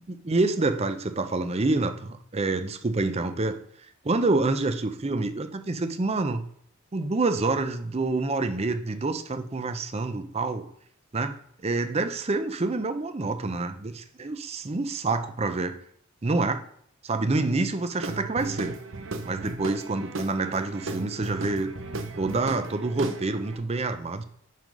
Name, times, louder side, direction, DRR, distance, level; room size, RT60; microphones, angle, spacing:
voice 1, 0.1-3.6 4.0-6.4 6.9-10.7 11.1-15.8 16.2-16.6 17.0-18.8 19.2-21.8 22.2-24.2, right 3 dB, 30° right, 9 dB, 0.6 m, -27 dB
Guitar / Drum, 18.0-23.6, right 2 dB, 60° right, 0.8 m, -36 dB
7.5 x 3.8 x 5.3 m, 0.65 s
head